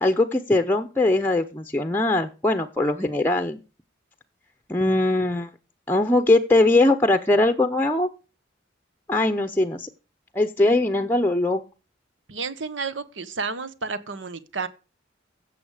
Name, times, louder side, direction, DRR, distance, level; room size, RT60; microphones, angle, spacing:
voice 1, 0.0-3.6 4.7-5.5 5.9-8.1 9.1-9.9 10.3-11.6, left 2 dB, 10° left, 0.7 m, -21 dB
voice 2, 10.6-11.1 12.3-14.7, right 4 dB, 75° right, 1.3 m, -32 dB
15.5 x 7.1 x 5.0 m
head